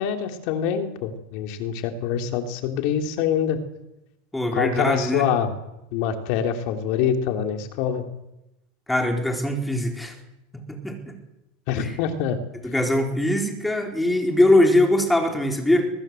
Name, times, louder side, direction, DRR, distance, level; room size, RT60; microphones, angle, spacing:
voice 1, 0.0-3.6 4.5-5.5 5.9-8.0 11.7-12.4, left 8 dB, 55° left, 6 dB, 3.4 m, -25 dB
voice 2, 4.3-5.3 8.9-10.2 10.5-11.2 11.8-11.9 12.6-15.9, left 1 dB, 5° left, 3 dB, 4.4 m, -22 dB
22.5 x 20.0 x 7.9 m, 0.92 s
supercardioid pair, 135°, 0 cm